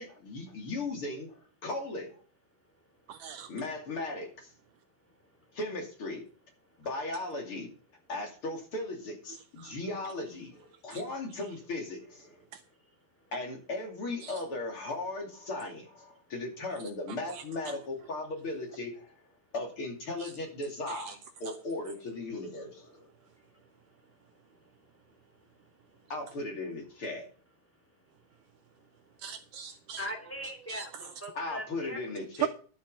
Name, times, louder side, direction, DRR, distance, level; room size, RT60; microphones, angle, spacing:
voice 1, 0.0-1.3 1.6-2.2 3.5-4.5 5.5-6.2 6.8-7.7 8.1-12.4 13.3-19.1 19.5-23.1 26.1-27.3 31.3-32.5, left 2 dB, 40° left, 3.0 m, -37 dB
voice 2, 3.1-3.5 9.6-9.7 10.9-11.0 12.5-12.6 14.2-14.3 17.3-17.4 20.2-20.3 20.9-21.1 29.2-30.1 30.7-30.9 32.4-32.5, right 11 dB, 80° right, 1.9 m, -37 dB
voice 3, 30.0-32.0, equal, 5° left, 2.0 m, -40 dB
12.0 x 7.3 x 5.5 m
omnidirectional pair, 4.1 m